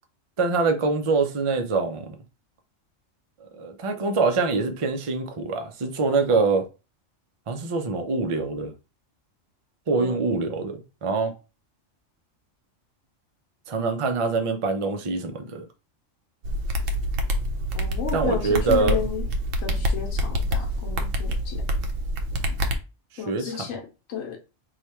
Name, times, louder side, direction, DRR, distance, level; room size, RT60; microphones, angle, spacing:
voice 1, 0.4-2.2 3.4-6.7 7.5-8.7 9.9-11.3 13.7-15.6 18.1-19.0 23.3-23.5, right 4 dB, 40° right, 0.4 m, -24 dB
voice 2, 9.9-10.6 17.7-19.3 19.6-21.7 23.2-24.4, left 8 dB, 85° left, 1.2 m, -33 dB
sound 1, 16.4-22.8, equal, 80° right, 1.0 m, -26 dB
3.3 x 2.4 x 4.2 m
omnidirectional pair, 1.3 m